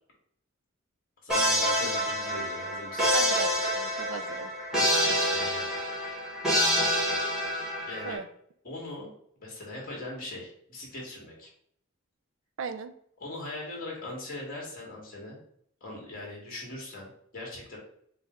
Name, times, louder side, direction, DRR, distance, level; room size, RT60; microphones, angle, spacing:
voice 1, 1.2-3.1 5.3-5.7 7.9-8.2 8.6-9.1 9.4-11.5 13.2-15.4 15.8-17.8, left 2 dB, 45° left, -2 dB, 1.3 m, -40 dB
sound 1, 1.3-8.2, equal, 5° right, 1.1 m, -27 dB
voice 2, 3.1-4.5 8.1-8.3 12.6-12.9, right 6 dB, 65° right, 10 dB, 0.4 m, -37 dB
4.3 x 2.0 x 3.5 m, 0.68 s
head